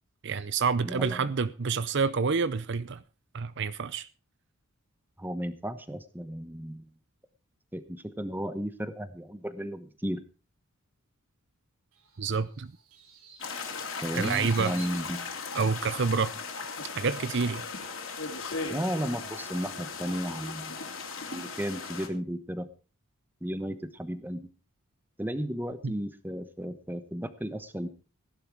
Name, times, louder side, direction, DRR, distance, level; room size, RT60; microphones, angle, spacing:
voice 1, 0.2-3.0 3.3-4.1 12.2-12.7 14.1-14.8 15.5-16.3 17.0-17.7 25.8-25.9, right 5 dB, 50° right, 0.6 m, -28 dB
voice 2, 0.8-1.3 5.2-6.9 7.7-10.2 14.0-15.3 18.7-20.8 21.3-22.7 23.4-24.5 25.2-27.9, equal, 10° right, 1.1 m, -34 dB
sound 1, 11.9-15.9, right 4 dB, 80° right, 3.5 m, -52 dB
sound 2, 13.4-22.1, left 4 dB, 60° left, 3.1 m, -37 dB
16.0 x 11.5 x 4.7 m
head